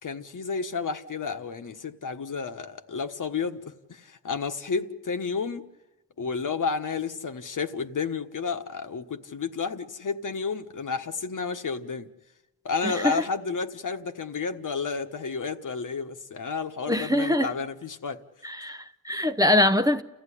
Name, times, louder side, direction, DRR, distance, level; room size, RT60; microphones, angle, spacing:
voice 1, 0.0-5.6 6.2-12.1 12.6-18.2, left 5 dB, 65° left, 1.3 m, -31 dB
voice 2, 12.8-13.2 16.9-17.5 18.4-20.0, left 1 dB, 10° right, 0.8 m, -23 dB
29.5 x 15.0 x 10.0 m
wide cardioid pair, 100°, 34 cm